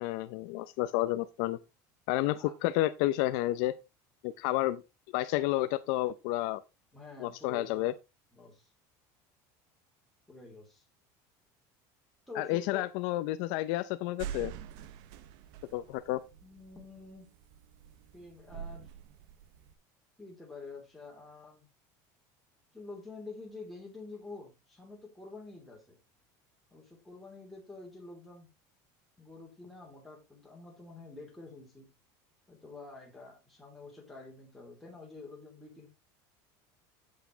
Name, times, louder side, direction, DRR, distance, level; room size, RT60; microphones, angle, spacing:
voice 1, 0.0-1.6 2.1-3.8 4.2-4.8 5.1-6.6 7.2-7.9 12.4-14.5 15.7-16.2, left 16 dB, 55° left, 0.6 m, -30 dB
voice 2, 6.9-7.9 8.3-8.7 10.3-10.8 12.3-12.9 16.4-17.3 18.1-18.8 20.2-21.7 22.7-26.0 26.7-28.5 29.2-31.9 32.5-35.9, left 3 dB, ahead, 2.9 m, -48 dB
sound 1, 14.2-19.7, right 9 dB, 50° right, 0.7 m, -45 dB
8.3 x 8.2 x 3.9 m
cardioid pair, 180°, 9 cm